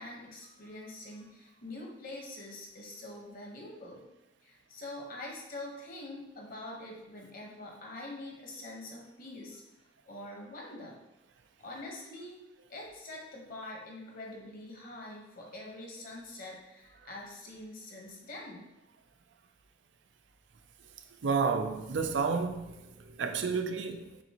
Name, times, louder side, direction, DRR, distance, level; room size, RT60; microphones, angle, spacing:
voice 1, 0.0-4.1 4.4-9.6 10.1-11.0 11.6-12.4 12.7-18.6, left 2 dB, 50° left, 1.1 m, -45 dB
voice 2, 21.2-24.2, right 5 dB, 75° right, 0.5 m, -31 dB
6.7 x 2.6 x 2.9 m
head